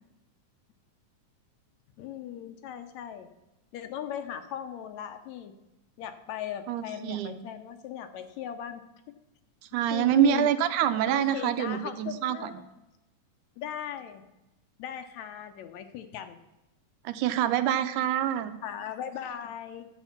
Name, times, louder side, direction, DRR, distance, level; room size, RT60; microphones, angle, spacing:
voice 1, 2.0-3.3 3.7-5.5 6.0-8.8 9.9-10.5 11.1-12.6 13.6-14.3 14.8-16.4 18.6-19.9, left 10 dB, 75° left, 8 dB, 2.0 m, -38 dB
voice 2, 6.7-7.4 9.7-12.5 17.0-18.6, right 10 dB, 85° right, 10 dB, 2.2 m, -26 dB
11.5 x 7.8 x 5.8 m, 0.99 s
omnidirectional pair, 3.5 m